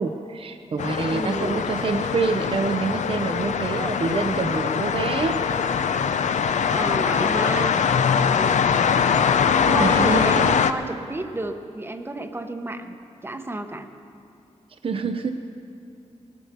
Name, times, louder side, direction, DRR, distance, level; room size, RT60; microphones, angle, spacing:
voice 1, 0.0-5.4 9.7-10.7 14.8-15.3, right 4 dB, 50° right, 7 dB, 0.6 m, -26 dB
sound 1, 0.8-10.7, left 7 dB, 75° left, 0.5 m, -22 dB
voice 2, 1.1-1.7 6.7-7.8 8.3-8.6 9.7-13.0 13.2-13.9, right 2 dB, 20° right, 7 dB, 0.9 m, -31 dB
19.0 x 9.2 x 6.7 m, 2.6 s
wide cardioid pair, 105°, 12 cm